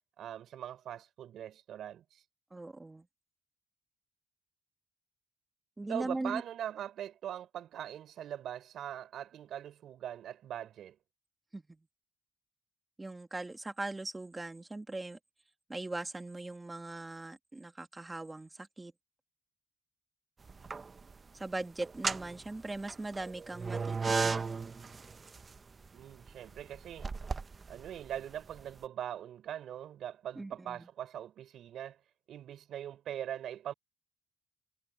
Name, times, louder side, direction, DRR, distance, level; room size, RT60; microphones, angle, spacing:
voice 1, 0.2-2.2 5.9-11.0 25.9-27.1 27.7-32.0 32.3-33.7, right 10 dB, 70° right, 5.6 m, -41 dB
voice 2, 2.5-3.0 5.8-6.4 11.5-11.6 13.0-15.2 15.7-18.9 21.3-24.5 30.4-30.8, right 2 dB, 20° right, 1.7 m, -40 dB
sound 1, 20.4-21.1 21.8-28.7, right 4 dB, 35° right, 1.0 m, -36 dB
cardioid pair, 90°, 0 cm